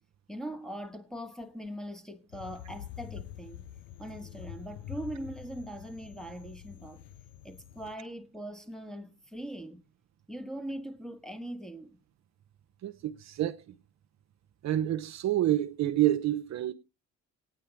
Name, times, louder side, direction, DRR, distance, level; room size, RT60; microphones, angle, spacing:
voice 1, 0.3-3.7 4.0-7.0 7.4-9.8 10.3-12.0, right 1 dB, ahead, 1.2 m, -41 dB
sound 1, 2.3-8.0, left 11 dB, 85° left, 0.7 m, -46 dB
voice 2, 12.8-13.6 14.6-16.7, right 13 dB, 55° right, 0.7 m, -28 dB
17.0 x 9.3 x 3.3 m
supercardioid pair, 60°, 33 cm